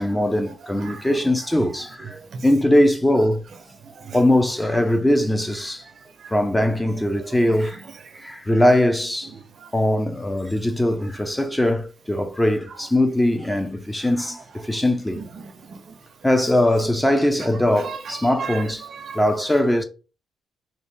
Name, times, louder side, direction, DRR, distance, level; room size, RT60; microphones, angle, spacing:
voice 1, 0.0-2.1 2.4-3.4 4.1-5.8 6.3-7.8 8.2-9.3 9.7-15.2 16.2-18.9 19.1-19.8, left 1 dB, 10° left, 0.5 m, -21 dB
voice 2, 15.2-15.8 17.8-19.2, right 6 dB, 55° right, 0.5 m, -36 dB
3.0 x 2.7 x 3.3 m
cardioid pair, 90°, 0 cm